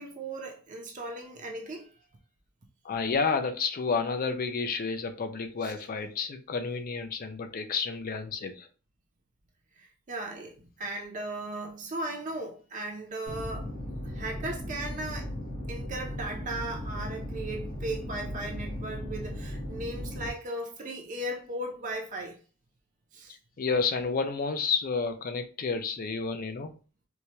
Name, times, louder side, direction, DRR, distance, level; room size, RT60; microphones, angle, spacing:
voice 1, 0.0-1.9 5.6-5.7 9.8-13.7 14.0-15.3 15.7-22.4 23.1-23.3, right 1 dB, 35° right, 0.5 m, -37 dB
voice 2, 2.8-8.7 23.3-26.7, left 5 dB, 40° left, 0.4 m, -30 dB
sound 1, 13.3-20.3, equal, 85° left, 1.8 m, -37 dB
4.6 x 2.1 x 2.8 m
head